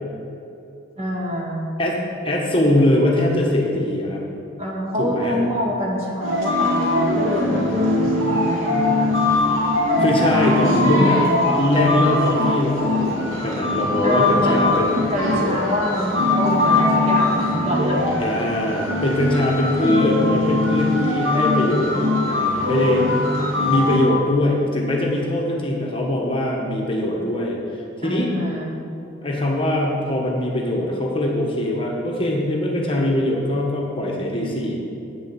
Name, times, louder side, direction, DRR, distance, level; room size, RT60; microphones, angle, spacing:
voice 1, 1.0-1.7 4.6-9.1 10.6-11.5 14.0-14.6 15.1-18.5 28.0-28.8, equal, 30° right, -3 dB, 1.8 m, -26 dB
voice 2, 2.2-4.2 5.0-5.4 10.0-11.2 11.6-14.9 18.2-22.0 22.6-23.1 23.6-28.3 29.2-34.8, left 1 dB, 25° left, -2 dB, 1.2 m, -21 dB
sound 1, 6.2-24.1, left 2 dB, 75° right, 2.2 m, -21 dB
8.5 x 7.3 x 7.4 m, 2.8 s
head